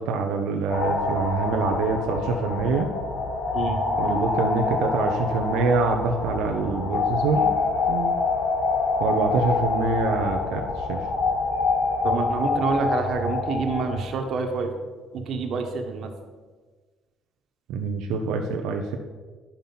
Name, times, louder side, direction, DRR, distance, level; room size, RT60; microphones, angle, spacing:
voice 1, 0.0-2.9 4.0-7.6 7.9-8.2 9.0-11.0 17.7-19.0, right 4 dB, 85° right, 3 dB, 0.8 m, -25 dB
sound 1, 0.7-14.0, left 3 dB, 60° left, 2.2 m, -26 dB
voice 2, 12.0-14.7 15.1-16.1, right 4 dB, 60° right, 3 dB, 1.5 m, -27 dB
10.0 x 5.9 x 5.6 m, 1.4 s
cardioid pair, 90°, 0 cm